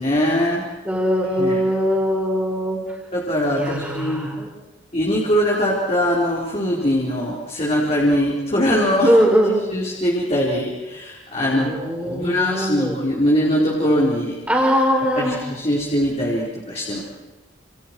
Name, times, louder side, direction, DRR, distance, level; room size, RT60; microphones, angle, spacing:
voice 1, 0.0-0.7 1.4-1.6 3.1-4.3 4.9-9.1 9.7-14.4 15.2-17.0, equal, 35° left, -4 dB, 4.6 m, -21 dB
voice 2, 0.9-2.8 3.6-4.5 9.1-9.5 11.5-13.0 14.5-15.4, equal, 5° right, -1 dB, 5.7 m, -20 dB
29.5 x 29.0 x 4.7 m, 1.1 s
head